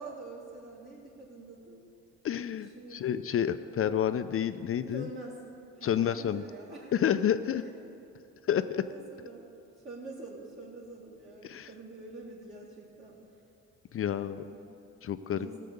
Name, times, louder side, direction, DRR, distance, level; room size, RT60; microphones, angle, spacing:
voice 1, 0.0-1.8 2.7-3.2 4.9-5.4 5.7-7.2 7.6-8.0 8.8-9.4 9.8-13.2 14.1-14.7 15.3-15.6, right 2 dB, 45° right, -7 dB, 2.3 m, -46 dB
voice 2, 2.2-5.1 5.8-6.4 6.9-7.6 8.5-8.8 11.4-11.7 13.9-14.4 15.0-15.5, left 9 dB, 45° left, 11 dB, 0.5 m, -29 dB
15.0 x 6.7 x 6.7 m, 2.8 s
cardioid pair, 90°, 30 cm